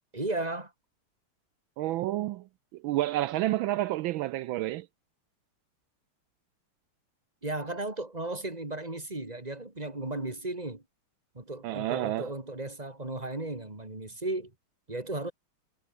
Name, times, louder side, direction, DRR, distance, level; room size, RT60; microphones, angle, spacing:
voice 1, 0.1-0.7 7.4-10.8 11.3-14.5 14.9-15.3, right 2 dB, 15° right, 3.1 m, -35 dB
voice 2, 1.8-4.9 11.6-12.3, right 15 dB, 75° right, 1.2 m, -30 dB
omnidirectional pair, 2.4 m